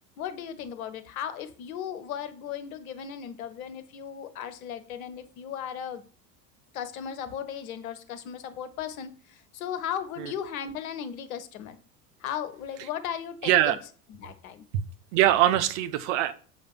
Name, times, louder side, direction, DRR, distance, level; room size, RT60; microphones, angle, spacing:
voice 1, 0.2-6.0 6.7-11.8 12.2-13.8 14.1-14.6, left 9 dB, 60° left, 1.2 m, -36 dB
voice 2, 13.4-13.8 14.7-14.8 15.1-16.3, right 13 dB, 50° right, 1.0 m, -22 dB
7.5 x 5.0 x 6.2 m
figure-of-eight pair, 75°, 48 cm